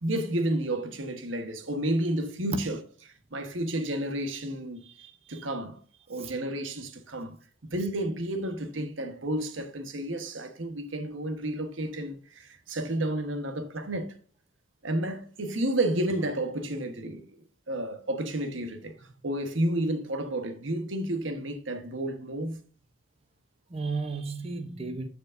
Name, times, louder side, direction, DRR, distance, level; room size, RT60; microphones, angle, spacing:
voice 1, 0.0-4.8 5.3-5.8 6.1-7.4 7.6-14.1 14.8-17.3 17.7-22.6, right 1 dB, 85° right, 1.2 m, -31 dB
voice 2, 4.9-5.4 6.2-6.3 23.7-25.1, right 3 dB, 30° right, 0.8 m, -35 dB
14.5 x 4.9 x 2.6 m
head